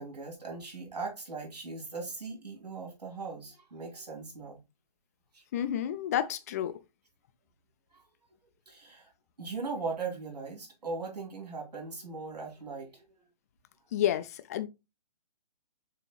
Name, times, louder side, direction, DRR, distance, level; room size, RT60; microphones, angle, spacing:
voice 1, 0.0-4.6 5.3-5.4 7.9-8.0 8.7-9.1 9.4-13.0, right 4 dB, 70° right, 2.7 m, -39 dB
voice 2, 5.5-6.7 13.9-14.7, left 11 dB, 25° left, 0.4 m, -30 dB
6.8 x 3.0 x 2.3 m
figure-of-eight pair, 140°, 21 cm